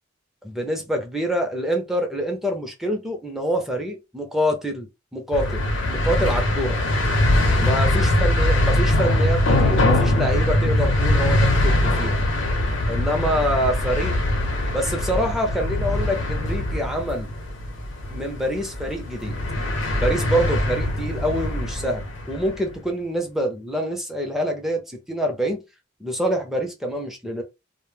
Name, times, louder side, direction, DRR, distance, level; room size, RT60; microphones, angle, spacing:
voice 1, 0.4-5.6 5.9-6.8 7.6-12.3 12.9-14.2 14.7-17.3 18.1-19.4 20.0-25.6 26.0-27.4, equal, ahead, 0.6 m, -26 dB
sound 1, 5.3-22.6, left 1 dB, 90° left, 0.8 m, -22 dB
2.1 x 2.0 x 3.2 m
head